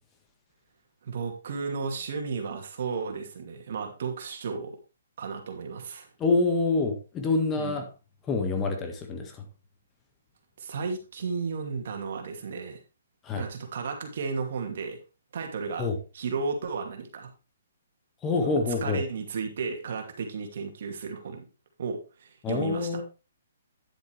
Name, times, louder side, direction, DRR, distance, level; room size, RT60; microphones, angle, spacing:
voice 1, 1.0-4.8 5.2-6.1 7.6-7.8 10.6-12.8 13.3-15.0 15.3-15.9 16.1-17.3 18.4-18.5 18.8-21.4 21.8-23.0, right 5 dB, 60° right, 3 dB, 2.5 m, -33 dB
voice 2, 6.2-7.9 8.3-9.4 13.2-13.4 15.8-16.0 18.2-19.0 22.4-23.0, left 3 dB, 20° left, 4 dB, 1.6 m, -26 dB
10.0 x 7.9 x 3.3 m, 0.31 s
hypercardioid pair, 145°, 0 cm